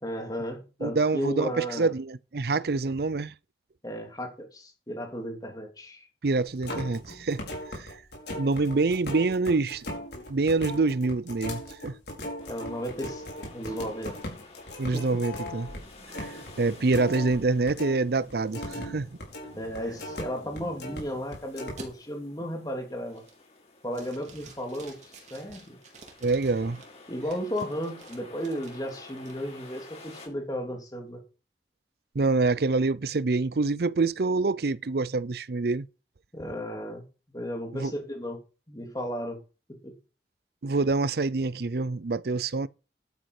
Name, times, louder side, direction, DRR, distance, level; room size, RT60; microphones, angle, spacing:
voice 1, 0.0-1.9 3.8-6.1 12.2-14.2 14.9-15.2 19.5-23.2 23.8-25.8 27.1-31.2 36.3-38.4 38.7-39.4 39.7-40.0, equal, 20° left, 3.1 m, -35 dB
voice 2, 0.8-3.3 6.2-8.0 8.4-9.8 10.3-12.0 14.8-15.8 16.2-19.1 26.2-26.8 32.1-35.9 37.7-37.9 40.6-42.7, right 3 dB, 60° right, 0.5 m, -26 dB
sound 1, 6.4-18.0 18.3-21.0 21.3-21.7, left 1 dB, 65° left, 4.9 m, -38 dB
sound 2, 12.4-30.3, left 3 dB, 40° left, 6.6 m, -52 dB
sound 3, 14.9-21.3 21.8-21.9 22.4-22.7 23.1-23.6 23.9-26.8 27.3-29.3, right 2 dB, 40° right, 3.8 m, -50 dB
11.5 x 9.7 x 4.9 m
head